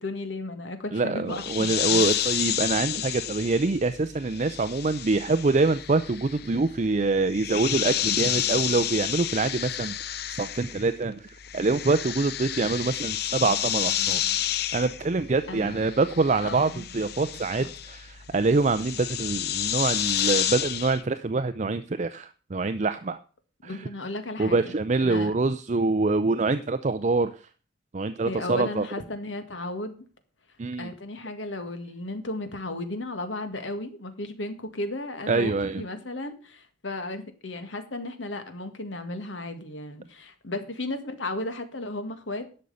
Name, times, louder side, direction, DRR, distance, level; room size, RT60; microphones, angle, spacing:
voice 1, 0.0-2.1 15.5-15.8 16.4-16.9 17.6-17.7 23.6-24.7 25.0-25.3 28.2-30.1 30.8-42.5, left 2 dB, 85° left, 8 dB, 1.9 m, -35 dB
voice 2, 0.9-10.0 10.4-11.3 11.5-14.2 14.7-23.2 23.6-23.8 24.4-27.3 27.9-28.9 30.6-30.9 35.3-35.8, right 3 dB, 40° right, 11 dB, 0.5 m, -25 dB
sound 1, 1.3-11.0 11.3-21.0, left 11 dB, 55° left, 0.6 m, -30 dB
11.0 x 6.4 x 6.8 m, 0.38 s
head